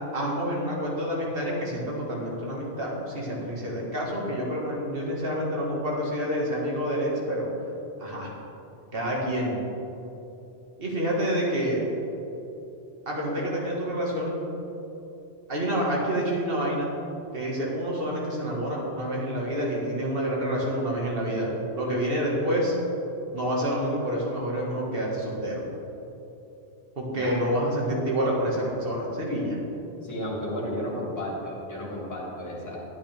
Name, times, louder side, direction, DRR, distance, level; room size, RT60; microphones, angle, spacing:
voice 1, 0.1-7.5 8.0-8.3 8.9-9.6 10.8-11.8 13.1-14.4 15.5-16.9 17.3-22.7 23.3-25.6 27.0-29.6, equal, 55° right, -3 dB, 1.9 m, -28 dB
voice 2, 30.0-32.8, equal, 15° left, -5 dB, 2.1 m, -33 dB
11.0 x 9.5 x 3.4 m, 2.9 s
omnidirectional pair, 1.2 m